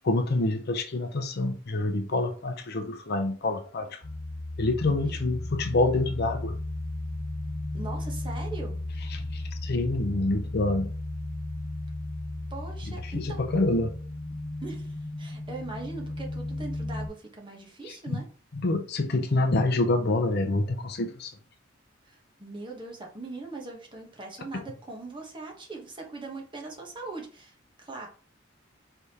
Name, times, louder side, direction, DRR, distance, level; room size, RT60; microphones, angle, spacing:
voice 1, 0.0-4.0 4.6-6.5 9.1-10.9 13.0-13.9 17.8-18.2 18.5-21.4, left 2 dB, 55° left, 0.6 m, -27 dB
sound 1, 4.0-17.1, left 2 dB, 85° left, 1.2 m, -35 dB
voice 2, 7.7-8.8 12.5-13.4 14.6-18.2 22.0-28.1, right 3 dB, 25° right, 1.1 m, -40 dB
4.9 x 3.4 x 2.8 m
head